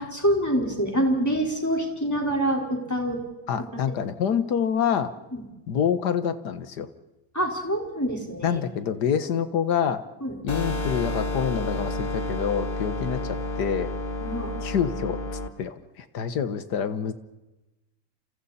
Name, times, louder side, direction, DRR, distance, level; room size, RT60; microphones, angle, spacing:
voice 1, 0.0-3.2 5.3-5.4 7.3-8.6 10.2-10.3 14.2-14.5, right 1 dB, 10° left, -1 dB, 4.5 m, -26 dB
voice 2, 3.5-5.1 5.7-6.9 8.4-10.0 10.4-13.2 13.6-13.9 14.6-15.2 15.6-17.1, left 8 dB, 60° left, 11 dB, 1.8 m, -26 dB
sound 1, 10.5-15.5, left 1 dB, 30° left, 1.5 m, -30 dB
30.0 x 28.0 x 4.3 m, 1.0 s
omnidirectional pair, 2.1 m